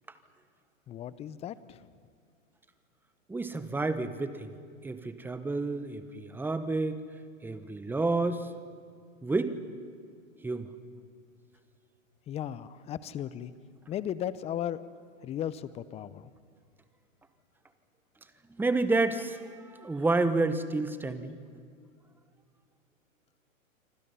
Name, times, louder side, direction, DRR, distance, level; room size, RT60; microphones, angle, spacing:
voice 1, 0.9-1.8 12.3-13.5 13.9-14.9 15.2-16.3, left 10 dB, 15° left, 16 dB, 0.6 m, -36 dB
voice 2, 3.3-4.5 4.8-7.0 7.4-8.5 9.2-9.6 10.4-10.7 18.6-21.4, right 3 dB, 5° right, 11 dB, 1.1 m, -30 dB
27.0 x 25.0 x 5.7 m, 2.2 s
hypercardioid pair, 120°, 41 cm